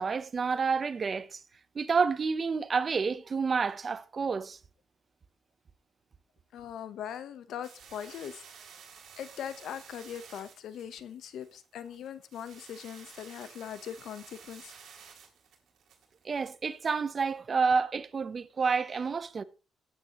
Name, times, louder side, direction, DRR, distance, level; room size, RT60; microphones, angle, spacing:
voice 1, 0.0-1.4 1.7-4.6 16.2-19.4, right 5 dB, 40° right, 0.8 m, -29 dB
voice 2, 6.5-8.4 9.2-14.7, left 9 dB, 75° left, 1.0 m, -41 dB
sound 1, 7.6-17.0, right 7 dB, 70° right, 3.4 m, -53 dB
18.0 x 8.6 x 3.0 m
cardioid pair, 90°, 0 cm